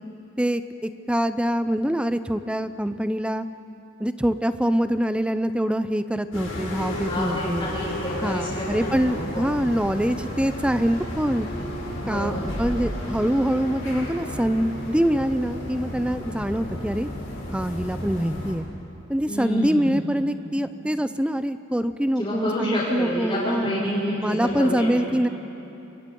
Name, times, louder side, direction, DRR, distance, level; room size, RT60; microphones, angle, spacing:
voice 1, 0.4-3.5 4.0-7.7 8.2-11.5 12.1-17.1 17.5-18.7 19.1-23.7 24.2-25.3, equal, 5° right, 11 dB, 0.6 m, -24 dB
sound 1, 6.3-18.5, left 1 dB, 80° left, 5.6 m, -33 dB
voice 2, 6.9-9.5 12.0-12.5 19.3-20.0 22.2-24.9, equal, 25° left, -9 dB, 7.3 m, -28 dB
28.5 x 23.0 x 5.4 m, 2.9 s
head